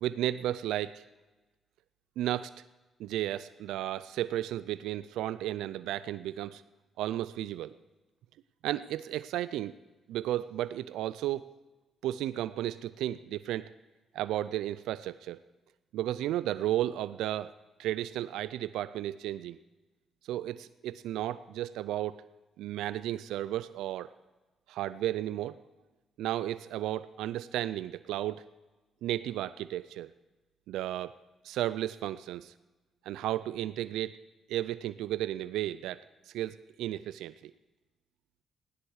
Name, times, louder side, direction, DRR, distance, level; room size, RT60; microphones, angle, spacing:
voice 1, 0.0-1.0 2.2-2.5 3.0-6.6 7.0-7.8 8.6-9.7 10.1-11.5 12.0-13.7 14.1-15.4 15.9-17.5 17.8-19.6 20.2-22.3 22.6-24.1 24.7-25.6 26.2-28.4 29.0-30.1 30.7-31.1 31.4-32.5 33.0-34.2 34.5-37.5, right 13 dB, 90° right, 15 dB, 0.3 m, -33 dB
16.0 x 10.5 x 4.8 m, 1.2 s
supercardioid pair, 65°, 0 cm